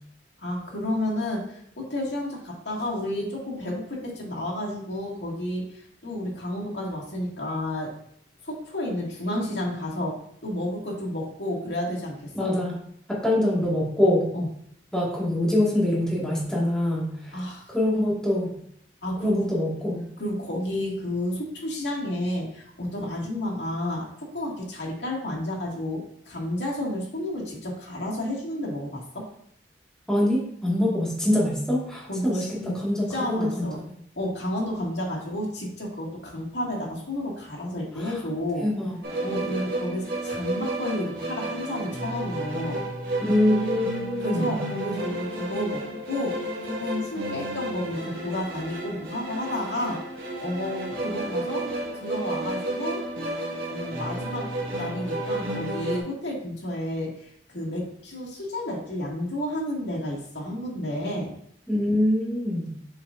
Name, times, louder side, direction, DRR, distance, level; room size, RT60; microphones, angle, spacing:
voice 1, 0.4-7.9 8.4-12.5 14.3-14.5 17.3-17.7 19.0-19.5 20.2-29.3 32.1-32.7 33.1-33.8 34.2-38.7 39.2-42.8 44.2-53.0 53.7-61.3, left 1 dB, 85° left, -3 dB, 2.0 m, -31 dB
voice 2, 12.3-12.7 13.1-14.3 14.9-17.4 17.7-18.5 19.2-20.1 30.1-33.7 38.0-38.1 38.6-38.9 43.2-44.6 61.7-62.7, left 1 dB, 5° left, -6 dB, 1.9 m, -24 dB
sound 1, 39.0-56.0, right 1 dB, 60° right, 1.8 m, -32 dB
7.6 x 4.9 x 2.6 m, 0.70 s
head